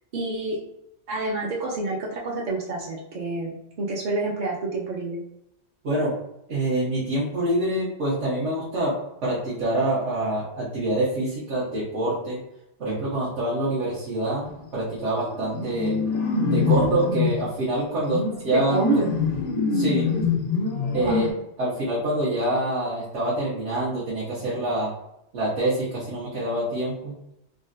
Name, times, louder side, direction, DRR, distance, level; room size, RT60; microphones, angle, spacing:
voice 1, 0.1-0.6 1.1-5.2 18.5-19.0 21.0-21.3, right 3 dB, 60° right, -4 dB, 0.5 m, -28 dB
voice 2, 6.5-9.0 9.2-12.4 12.8-16.0 16.5-18.8 19.7-20.1 20.9-21.3 21.6-24.9 25.3-27.1, right 1 dB, 80° right, -8 dB, 1.2 m, -26 dB
sound 1, 14.5-14.7 15.0-17.4 18.1-21.3, left 4 dB, 55° left, 0.4 m, -25 dB
3.7 x 2.1 x 2.5 m, 0.83 s
omnidirectional pair, 1.2 m